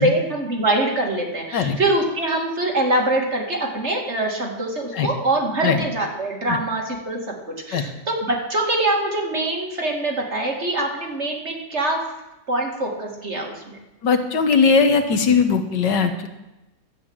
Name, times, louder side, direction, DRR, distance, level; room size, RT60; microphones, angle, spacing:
voice 1, 0.0-7.3 7.7-12.0 12.5-13.8, right 2 dB, 40° right, 0 dB, 2.6 m, -24 dB
voice 2, 14.0-16.3, left 5 dB, 80° left, 7 dB, 1.8 m, -19 dB
12.5 x 8.2 x 8.7 m, 0.99 s
omnidirectional pair, 1.9 m